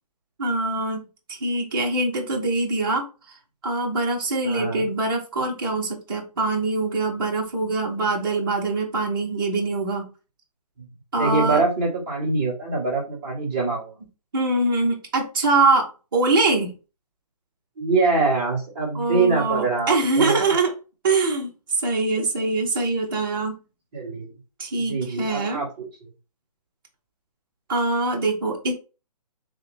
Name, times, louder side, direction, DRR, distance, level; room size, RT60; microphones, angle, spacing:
voice 1, 0.4-3.0 3.6-10.1 11.1-11.6 14.3-16.7 18.9-20.7 21.0-21.5 21.8-23.6 24.6-25.6 27.7-28.7, right 3 dB, 35° right, -1 dB, 0.8 m, -23 dB
voice 2, 4.4-4.9 10.8-10.9 11.1-14.0 17.8-20.4 23.9-24.3 24.9-26.1, right 3 dB, 15° right, -6 dB, 1.2 m, -24 dB
3.5 x 2.7 x 3.2 m, 0.32 s
hypercardioid pair, 175°, 21 cm